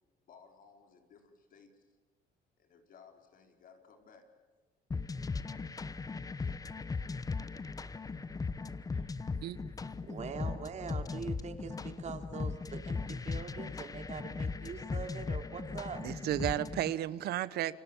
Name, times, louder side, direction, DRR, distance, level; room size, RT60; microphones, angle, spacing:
voice 1, 0.2-2.0 2.6-4.2, left 6 dB, 55° left, 5 dB, 4.6 m, -59 dB
sound 1, 4.9-16.9, left 4 dB, 20° left, 1.1 m, -38 dB
voice 2, 10.0-16.0, right 6 dB, 45° right, 7 dB, 3.1 m, -43 dB
voice 3, 16.0-17.7, right 13 dB, 70° right, 17 dB, 1.0 m, -33 dB
29.0 x 25.0 x 7.3 m, 1.4 s
cardioid pair, 110°, 17 cm